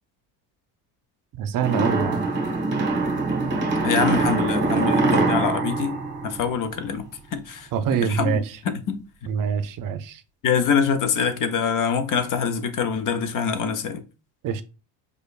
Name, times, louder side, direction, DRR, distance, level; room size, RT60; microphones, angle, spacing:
voice 1, 1.4-2.2 7.7-8.6 9.3-10.2 14.4-14.6, right 7 dB, 50° right, 0.5 m, -25 dB
sound 1, 1.6-7.0, right 3 dB, 25° right, 1.2 m, -23 dB
voice 2, 3.8-6.0 6.2-7.7 8.0-9.0 10.4-14.0, left 6 dB, 45° left, 0.6 m, -24 dB
4.9 x 2.3 x 2.4 m
supercardioid pair, 85°, 44 cm